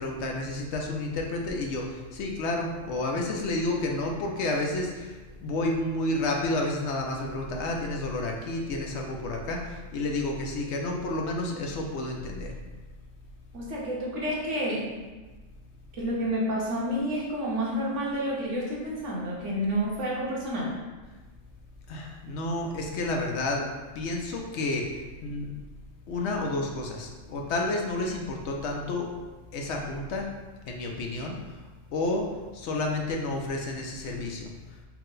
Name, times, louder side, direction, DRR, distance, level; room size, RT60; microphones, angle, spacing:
voice 1, 0.0-12.6 21.9-23.7 23.9-25.5 26.1-29.1 29.5-30.3 30.7-31.6 31.9-34.8, left 2 dB, 70° left, 1 dB, 0.8 m, -30 dB
voice 2, 13.5-14.9 16.0-20.7, equal, 70° right, -4 dB, 1.3 m, -29 dB
4.5 x 2.1 x 3.8 m, 1.2 s
omnidirectional pair, 1.3 m